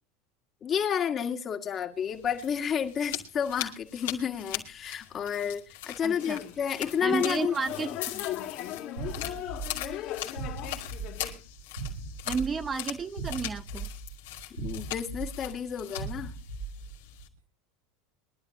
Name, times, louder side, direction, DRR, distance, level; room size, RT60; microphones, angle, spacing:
voice 1, 0.6-7.5 8.1-8.2 14.5-16.3, left 8 dB, 35° left, 2.1 m, -31 dB
sound 1, 2.1-17.3, left 14 dB, 75° left, 2.5 m, -41 dB
voice 2, 6.0-6.4 7.0-7.9 12.3-13.9, right 5 dB, 25° right, 0.9 m, -32 dB
sound 2, 6.1-11.4, left 11 dB, 55° left, 2.6 m, -38 dB
sound 3, 9.0-17.2, right 4 dB, 90° right, 3.1 m, -39 dB
23.0 x 11.5 x 2.8 m
hypercardioid pair, 85°, 0 cm